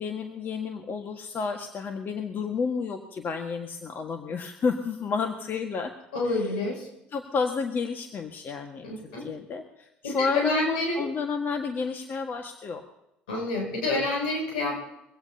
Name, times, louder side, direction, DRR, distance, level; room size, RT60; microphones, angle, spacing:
voice 1, 0.0-5.9 6.3-6.5 7.1-12.8, left 5 dB, 50° left, 4 dB, 1.6 m, -31 dB
voice 2, 6.1-6.9 8.8-9.3 10.0-11.1 13.3-14.8, left 2 dB, 90° left, 0 dB, 6.8 m, -28 dB
23.0 x 16.5 x 2.8 m, 0.82 s
hypercardioid pair, 65°, 5 cm